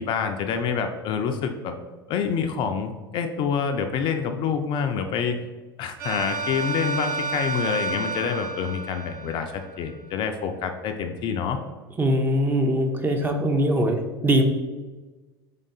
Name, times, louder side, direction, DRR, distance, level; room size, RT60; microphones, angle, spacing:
voice 1, 0.0-1.8 2.1-5.4 5.8-11.6, left 6 dB, 35° left, 6 dB, 0.4 m, -27 dB
sound 1, 6.0-9.9, right 4 dB, 55° right, 1.1 m, -31 dB
voice 2, 12.0-14.4, equal, 15° right, 4 dB, 0.5 m, -22 dB
3.7 x 3.5 x 3.9 m, 1.3 s
figure-of-eight pair, 80°, 13 cm